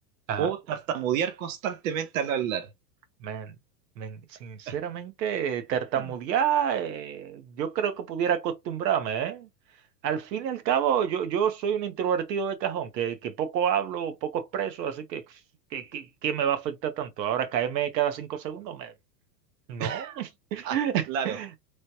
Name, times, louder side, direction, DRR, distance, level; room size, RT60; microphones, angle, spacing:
voice 1, 0.4-2.7 4.7-4.8 19.8-20.2 20.6-20.8 21.1-21.4, right 8 dB, 55° right, 0.6 m, -29 dB
voice 2, 3.2-3.5 4.0-9.5 10.0-15.2 15.7-18.9 19.7-21.5, right 9 dB, 80° right, 0.9 m, -29 dB
3.2 x 2.1 x 2.7 m
supercardioid pair, 170°, 50 cm